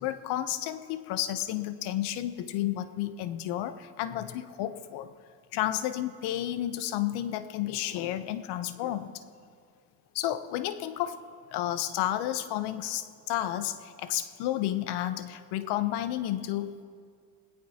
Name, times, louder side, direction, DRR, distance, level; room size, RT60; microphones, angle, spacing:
voice 1, 0.0-5.1 5.5-9.1 10.1-11.2 11.5-16.7, left 13 dB, 70° left, 12 dB, 0.9 m, -31 dB
19.5 x 16.5 x 2.9 m, 2.2 s
supercardioid pair, 95°, 41 cm